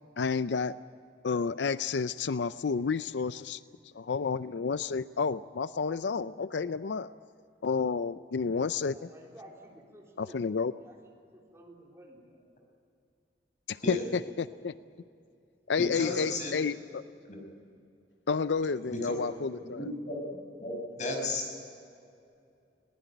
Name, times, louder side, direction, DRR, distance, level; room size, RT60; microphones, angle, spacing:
voice 1, 0.2-0.8 1.2-3.6 3.9-7.1 7.6-9.1 10.2-10.7 13.7-14.7 15.7-17.0 18.3-19.9, left 5 dB, 90° left, 14 dB, 0.5 m, -30 dB
voice 2, 8.8-10.9 11.5-12.4, right 1 dB, 15° right, -1 dB, 4.0 m, -53 dB
voice 3, 15.8-16.5 17.3-17.4 18.9-19.1 19.6-20.2 20.6-21.5, left 2 dB, 45° left, 2 dB, 5.7 m, -34 dB
22.0 x 19.5 x 9.1 m, 2.5 s
head